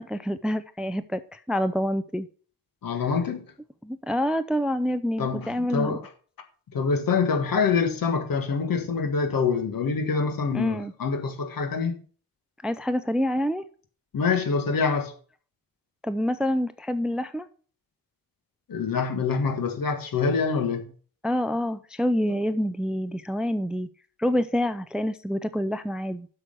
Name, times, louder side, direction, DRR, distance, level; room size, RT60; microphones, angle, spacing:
voice 1, 0.0-2.3 3.8-6.0 10.5-10.9 12.6-13.6 16.0-17.5 21.2-23.9 24.2-26.3, equal, ahead, 0.4 m, -27 dB
voice 2, 2.8-3.5 5.2-6.1 6.7-12.0 14.1-15.1 18.7-20.9 22.3-22.4, left 5 dB, 65° left, 1.6 m, -25 dB
8.0 x 6.1 x 6.4 m
wide cardioid pair, 135°, 37 cm